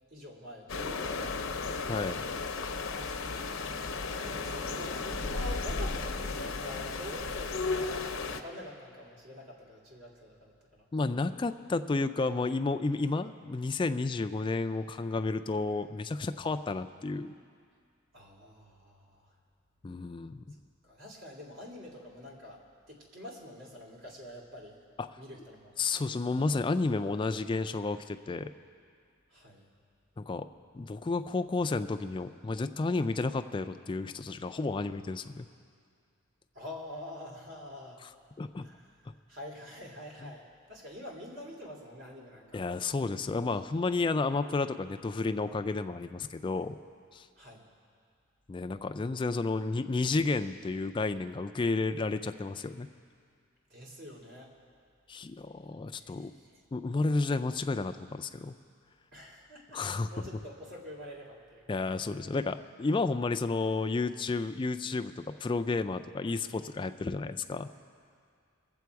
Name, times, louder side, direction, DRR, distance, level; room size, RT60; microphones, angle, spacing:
voice 1, 0.1-1.8 4.1-10.8 11.2-11.5 18.1-19.3 20.8-24.8 25.2-25.9 29.3-29.7 36.5-38.0 38.6-38.9 39.3-42.6 47.4-47.7 53.7-54.5 56.0-56.6 59.1-59.8 60.1-61.7, left 1 dB, 60° right, -3 dB, 2.4 m, -46 dB
sound 1, 0.7-8.4, left 4 dB, 65° left, 0.7 m, -34 dB
voice 2, 1.9-2.3 10.9-17.3 19.8-20.4 25.0-25.1 25.8-28.5 30.2-30.5 30.7-35.5 38.4-38.7 42.5-46.8 47.1-47.3 48.5-52.9 55.1-56.3 56.7-58.5 59.7-60.1 61.7-67.7, left 3 dB, 25° left, 9 dB, 0.3 m, -31 dB
22.0 x 7.7 x 4.7 m, 2.2 s
head